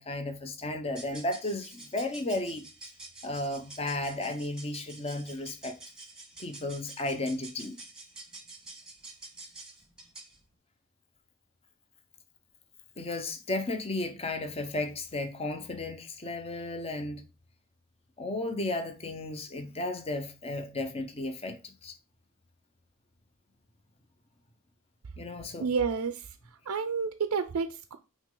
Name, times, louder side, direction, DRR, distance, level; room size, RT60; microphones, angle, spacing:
voice 1, 0.0-2.6 3.2-5.8 6.4-7.8 13.0-17.2 18.2-21.9 25.2-25.7, left 2 dB, 25° left, 0.8 m, -34 dB
sound 1, 0.9-10.4, right 2 dB, 5° right, 1.3 m, -48 dB
voice 2, 25.6-28.0, right 5 dB, 80° right, 0.5 m, -30 dB
8.3 x 3.2 x 3.8 m
head